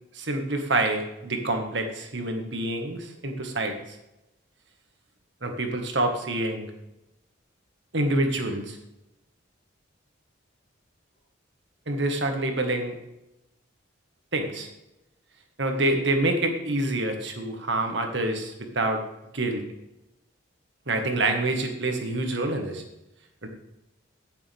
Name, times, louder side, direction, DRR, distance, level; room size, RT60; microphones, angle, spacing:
voice 1, 0.1-3.7 5.4-6.7 7.9-8.8 11.9-13.0 14.3-14.7 15.6-19.0 19.3-19.6 20.9-22.8 23.4-23.5, right 2 dB, 65° right, 4 dB, 1.7 m, -27 dB
15.0 x 7.0 x 3.6 m, 0.92 s
head